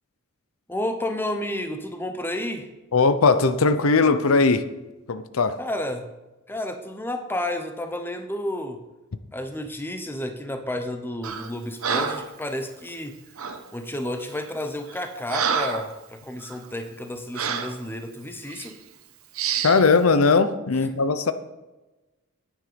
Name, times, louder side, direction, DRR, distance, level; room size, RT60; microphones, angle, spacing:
voice 1, 0.7-2.7 5.6-6.1 6.5-8.8 9.3-13.2 13.7-18.7, left 1 dB, 10° left, 6 dB, 0.9 m, -31 dB
voice 2, 2.9-4.6 5.1-5.6 19.6-21.3, left 4 dB, 75° left, 11 dB, 0.7 m, -19 dB
Breathing, 11.2-11.5 11.8-12.3 13.4-13.6 14.3-14.5 14.9-15.9 16.4-16.6 17.4-17.8 18.5-18.7 19.4-19.8, right 6 dB, 80° right, 1.0 m, -28 dB
9.9 x 9.5 x 5.2 m, 1.1 s
head